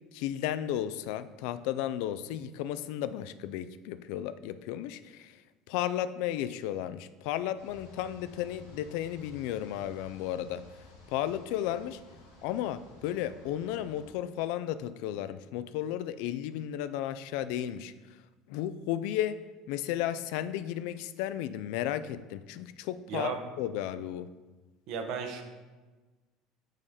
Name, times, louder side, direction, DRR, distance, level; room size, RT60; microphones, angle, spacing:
voice 1, 0.1-5.4 5.7-10.6 11.1-12.0 12.4-17.9 18.5-19.4 19.7-24.3, left 11 dB, 65° left, 13 dB, 0.3 m, -34 dB
sound 1, 7.6-14.1, left 2 dB, 85° left, 1.4 m, -54 dB
voice 2, 23.1-23.4 24.9-25.4, right 6 dB, 60° right, 5 dB, 0.9 m, -34 dB
6.4 x 4.1 x 4.9 m, 1.3 s
hypercardioid pair, 65°, 0 cm